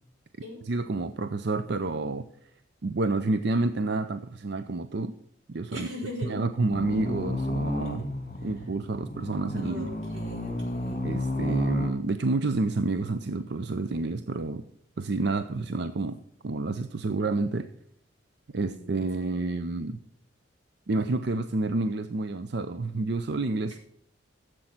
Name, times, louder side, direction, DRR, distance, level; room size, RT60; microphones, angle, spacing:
voice 1, 0.6-2.5 2.8-5.1 5.5-5.9 6.3-8.0 8.4-9.9 11.0-14.7 15.0-17.7 18.5-20.0 20.9-23.8, right 3 dB, 55° right, 11 dB, 0.5 m, -29 dB
voice 2, 5.7-6.4 7.8-8.1 9.5-11.1 18.6-19.3, left 1 dB, 85° right, 0 dB, 4.5 m, -41 dB
sound 1, 6.7-11.9, left 1 dB, 35° left, 1.8 m, -32 dB
14.5 x 7.7 x 5.9 m, 0.68 s
head